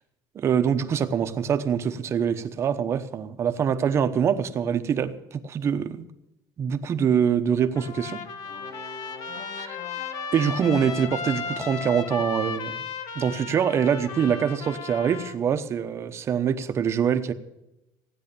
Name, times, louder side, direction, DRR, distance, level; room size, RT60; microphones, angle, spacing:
voice 1, 0.3-6.1 6.6-8.2 10.3-12.8 13.1-17.3, right 8 dB, 30° right, 9 dB, 1.0 m, -24 dB
Trumpet, 7.7-15.4, left 5 dB, 50° left, 1.4 m, -35 dB
sound 1, 8.4-12.4, left 4 dB, 80° left, 2.7 m, -44 dB
16.5 x 9.8 x 6.9 m, 0.92 s
cardioid pair, 160°, 8 cm